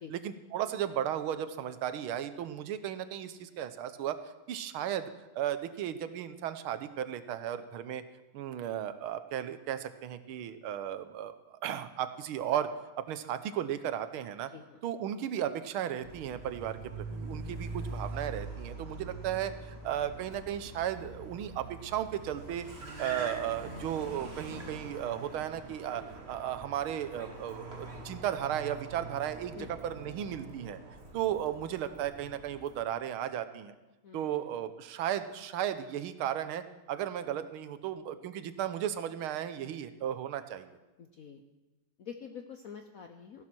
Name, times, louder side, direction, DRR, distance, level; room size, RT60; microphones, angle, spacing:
voice 1, 0.1-4.2 4.5-8.0 8.3-12.7 13.0-14.5 14.8-22.7 23.0-30.8 31.1-33.7 34.1-40.7, right 10 dB, 80° right, 11 dB, 1.6 m, -35 dB
Car, 16.0-32.8, right 2 dB, 30° right, 1.9 m, -44 dB
voice 2, 34.0-34.6 41.0-41.4 42.0-43.4, left 7 dB, 65° left, 6 dB, 0.8 m, -46 dB
15.0 x 11.5 x 6.0 m, 1.1 s
omnidirectional pair, 2.4 m